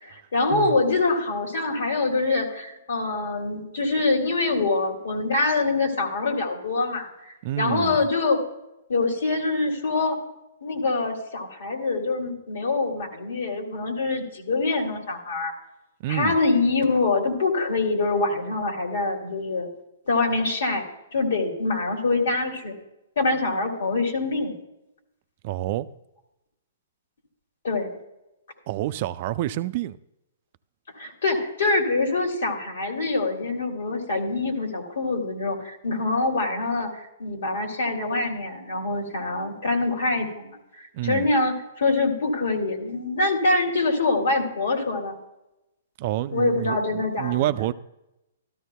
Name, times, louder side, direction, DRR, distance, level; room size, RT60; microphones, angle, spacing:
voice 1, 0.0-8.4 8.9-10.2 10.6-15.5 16.1-19.7 20.1-20.9 21.1-22.8 23.2-24.5 27.6-27.9 31.0-45.2 46.3-47.5, left 3 dB, 75° left, 2.4 m, -25 dB
voice 2, 7.4-8.0 16.0-16.4 25.4-25.9 28.7-30.0 40.9-41.3 46.0-47.7, right 14 dB, 45° right, 0.4 m, -28 dB
13.0 x 13.0 x 2.2 m
hypercardioid pair, 145°, 0 cm